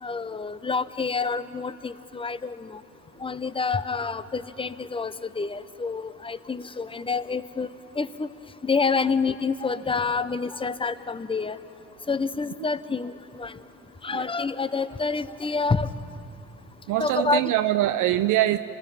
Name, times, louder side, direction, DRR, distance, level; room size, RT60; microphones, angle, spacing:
voice 1, 0.0-2.8 3.2-7.7 7.9-8.3 8.6-11.6 12.1-13.5 14.0-15.9 17.0-17.5, left 4 dB, 20° left, 14 dB, 0.6 m, -28 dB
voice 2, 16.9-18.6, right 14 dB, 85° right, 9 dB, 0.5 m, -23 dB
27.0 x 18.5 x 5.7 m, 2.9 s
cardioid pair, 90°, 30 cm